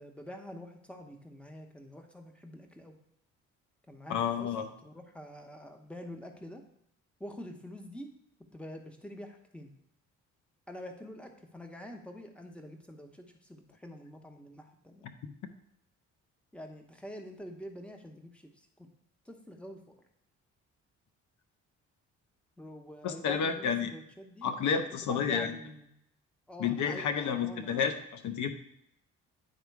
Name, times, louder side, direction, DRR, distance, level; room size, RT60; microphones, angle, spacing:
voice 1, 0.0-2.9 3.9-4.5 4.8-6.6 7.2-8.1 8.5-9.7 10.7-15.1 16.5-18.9 19.3-20.0 22.6-24.5 25.0-25.9 26.5-28.0, equal, 5° left, 4 dB, 1.0 m, -46 dB
voice 2, 4.1-4.7 23.0-23.9 24.4-25.5 26.6-28.5, left 7 dB, 75° left, 8 dB, 0.7 m, -30 dB
9.5 x 3.7 x 4.7 m, 0.75 s
cardioid pair, 90°, 30 cm